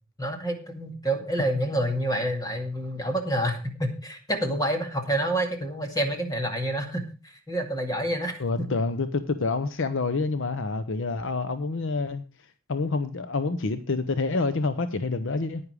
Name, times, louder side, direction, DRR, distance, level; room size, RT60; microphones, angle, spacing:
voice 1, 0.2-8.7, right 1 dB, 20° left, 2.1 m, -28 dB
voice 2, 8.4-12.2 12.7-15.6, left 3 dB, 60° left, 0.7 m, -27 dB
9.9 x 9.8 x 4.8 m
head